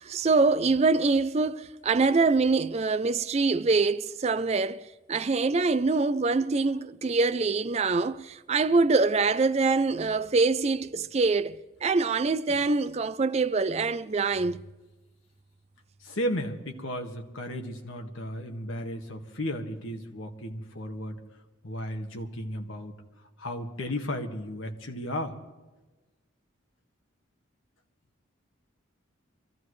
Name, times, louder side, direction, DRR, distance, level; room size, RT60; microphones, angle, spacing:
voice 1, 0.0-11.6 11.8-14.6, right 3 dB, 30° right, 0.4 m, -24 dB
voice 2, 16.0-21.2 21.6-23.0 23.4-25.4, equal, 85° left, 1.7 m, -34 dB
24.5 x 15.0 x 3.2 m
head